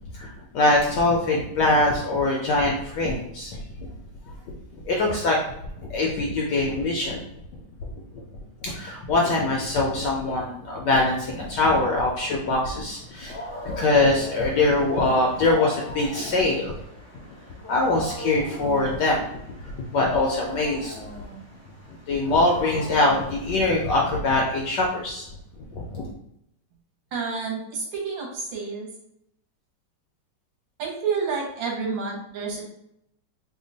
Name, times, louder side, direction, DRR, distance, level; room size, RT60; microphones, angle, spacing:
voice 1, 0.1-3.6 4.9-5.4 5.9-7.2 7.8-7.9 8.6-13.4 13.6-16.7 17.7-19.3 19.6-21.0 22.1-25.3 25.7-26.0, left 2 dB, 70° left, -2 dB, 1.0 m, -23 dB
Wild animals, 12.9-24.1, left 1 dB, 15° left, 0.6 m, -39 dB
voice 2, 27.1-28.9 30.8-32.6, right 5 dB, 70° right, -1 dB, 1.4 m, -29 dB
3.4 x 2.1 x 3.9 m, 0.77 s
omnidirectional pair, 2.3 m